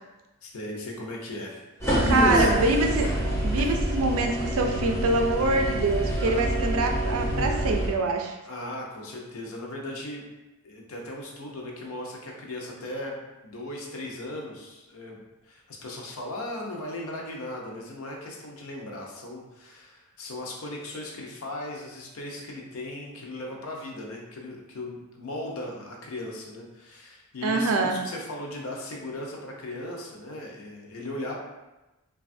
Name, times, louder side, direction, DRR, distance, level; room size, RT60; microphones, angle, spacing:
voice 1, 0.4-1.6 2.2-2.5 3.6-3.7 6.5-6.7 8.4-10.2 10.6-31.4, left 1 dB, 70° left, -1 dB, 0.6 m, -37 dB
sound 1, 1.8-7.9, right 1 dB, 15° left, 0.5 m, -26 dB
voice 2, 2.1-3.1 3.4-8.3 27.4-28.0, right 2 dB, 70° right, 3 dB, 0.4 m, -25 dB
3.2 x 2.3 x 2.5 m, 1.0 s
head